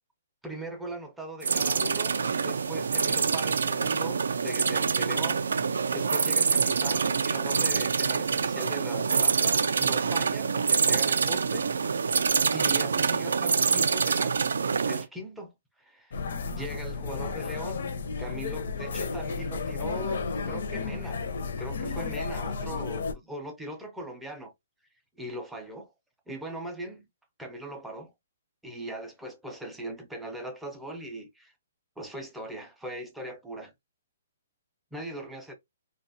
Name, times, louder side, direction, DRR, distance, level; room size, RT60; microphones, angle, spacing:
voice 1, 0.4-11.7 12.1-14.4 14.8-16.2 16.4-17.9 18.2-21.2 21.6-24.5 25.2-25.9 26.3-27.1 27.4-28.1 28.6-31.5 32.0-33.7 34.9-35.5, right 1 dB, 5° right, 0.4 m, -40 dB
sound 1, 1.4-15.1, right 5 dB, 90° right, 0.3 m, -26 dB
sound 2, 16.1-23.1, left 4 dB, 60° left, 0.5 m, -33 dB
2.7 x 2.2 x 2.5 m
hypercardioid pair, 165°, 0 cm